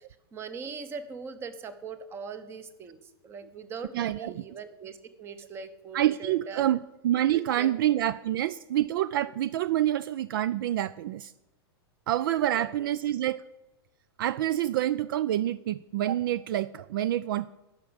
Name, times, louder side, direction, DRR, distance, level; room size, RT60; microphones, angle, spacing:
voice 1, 0.0-6.8 7.3-7.7 12.5-12.9, right 5 dB, 20° right, 12 dB, 0.9 m, -41 dB
voice 2, 3.9-4.4 5.9-6.8 7.0-11.3 12.1-13.4 14.2-17.5, right 12 dB, 60° right, 17 dB, 0.4 m, -27 dB
11.0 x 6.1 x 8.6 m, 0.99 s
supercardioid pair, 150°, 13 cm